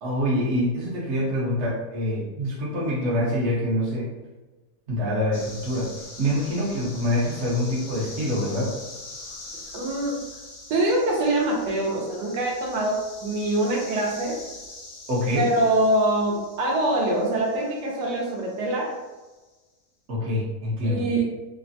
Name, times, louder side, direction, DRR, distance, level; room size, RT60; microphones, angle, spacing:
voice 1, 0.0-4.1 4.9-8.8 15.1-15.5 20.1-21.0, left 1 dB, 50° right, -5 dB, 1.0 m, -25 dB
sound 1, 5.3-19.3, left 2 dB, 60° left, 1.0 m, -43 dB
voice 2, 9.7-10.2 10.7-14.4 15.4-19.0 20.8-21.2, right 1 dB, 80° right, -2 dB, 1.2 m, -24 dB
3.2 x 2.1 x 2.6 m, 1.1 s
omnidirectional pair, 1.8 m